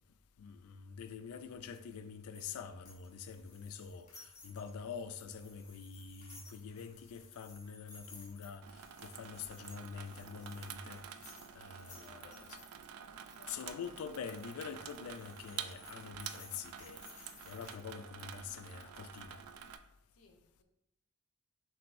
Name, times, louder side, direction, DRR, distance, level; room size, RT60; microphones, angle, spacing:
voice 1, 0.4-12.5 13.5-19.4, left 6 dB, 85° left, 0.4 m, -46 dB
sound 1, 1.7-12.7 13.3-18.0, left 3 dB, 35° left, 1.4 m, -58 dB
Water tap faucet / Sink (filling or washing), 8.6-19.8, right 8 dB, 90° right, 0.3 m, -49 dB
voice 2, 11.9-12.7 13.1-13.7 20.1-20.6, left 2 dB, 70° left, 0.8 m, -63 dB
6.0 x 2.6 x 2.6 m
head